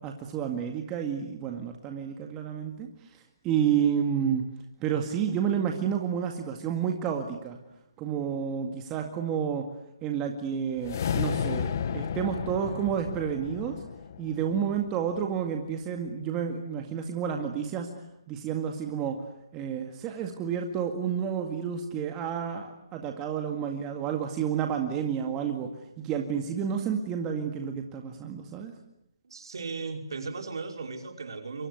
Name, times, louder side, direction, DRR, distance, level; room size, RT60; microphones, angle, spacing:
voice 1, 0.0-2.9 3.4-4.4 4.8-7.6 8.0-9.7 10.0-13.8 14.2-17.9 18.3-19.2 19.5-25.7 26.0-28.7, right 8 dB, 15° right, 4 dB, 2.0 m, -30 dB
sound 1, 10.8-15.2, left 7 dB, 40° left, 1.4 m, -33 dB
voice 2, 29.2-31.7, right 4 dB, 60° right, 5 dB, 5.2 m, -36 dB
27.0 x 24.0 x 8.1 m, 0.77 s
hypercardioid pair, 155°, 3 cm